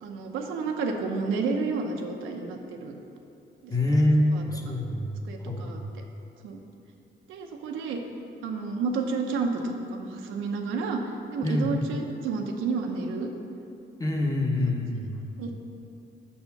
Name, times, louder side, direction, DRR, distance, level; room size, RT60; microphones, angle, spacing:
voice 1, 0.0-2.9 3.6-3.9 4.3-4.4 5.2-6.0 6.4-6.6 7.3-8.0 8.4-13.3 15.4-15.5, right 4 dB, 85° right, 3 dB, 0.7 m, -31 dB
voice 2, 3.7-5.9 11.4-11.7 14.0-15.2, left 1 dB, 20° left, 0 dB, 0.9 m, -26 dB
6.7 x 4.2 x 5.7 m, 2.6 s
cardioid pair, 90°, 20 cm